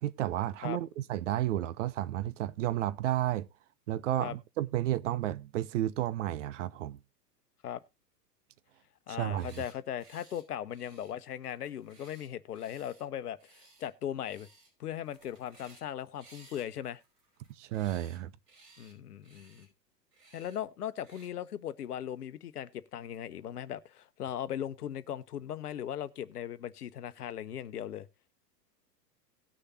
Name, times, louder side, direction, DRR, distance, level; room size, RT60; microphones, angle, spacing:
voice 1, 0.0-3.5 3.9-7.0 9.1-9.6 17.6-18.3, right 13 dB, 50° right, 0.7 m, -32 dB
voice 2, 9.1-14.5 14.8-17.0 18.8-19.7 20.3-28.1, left 10 dB, 65° left, 1.0 m, -38 dB
sound 1, 9.2-9.7 10.0-10.4 10.7-13.0 13.4-13.9 14.2-14.7 15.0-15.9 16.2-18.2 18.5-18.9 19.2-19.7 20.1-20.6 21.0-21.3, right 3 dB, 70° right, 5.8 m, -59 dB
18.5 x 6.6 x 2.7 m
figure-of-eight pair, 100°, 49 cm